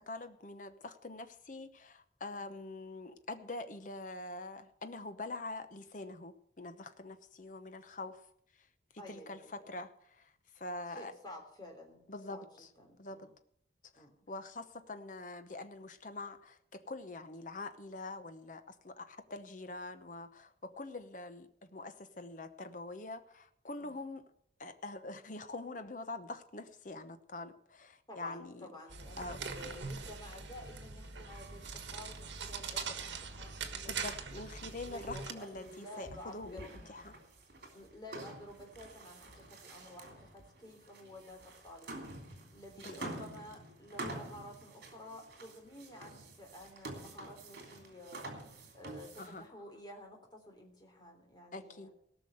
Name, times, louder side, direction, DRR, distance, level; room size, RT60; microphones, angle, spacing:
voice 1, 0.0-8.2 8.6-8.7 8.9-11.1 12.1-12.7 13.0-13.3 13.9-24.3 24.6-28.7 29.2-29.5 33.8-37.1 42.8-43.1 49.2-49.5 51.5-51.9, left 2 dB, 45° left, 9 dB, 1.0 m, -45 dB
voice 2, 9.0-9.5 10.9-12.4 12.8-13.3 13.9-14.1 23.8-23.9 28.1-34.1 34.9-36.9 37.7-41.9 42.5-51.9, left 1 dB, 25° left, 1 dB, 3.3 m, -51 dB
sound 1, 28.9-35.3, right 5 dB, 80° right, 1.5 m, -42 dB
sound 2, 31.3-49.5, right 2 dB, 65° right, 3.2 m, -49 dB
18.0 x 6.1 x 7.8 m, 0.70 s
head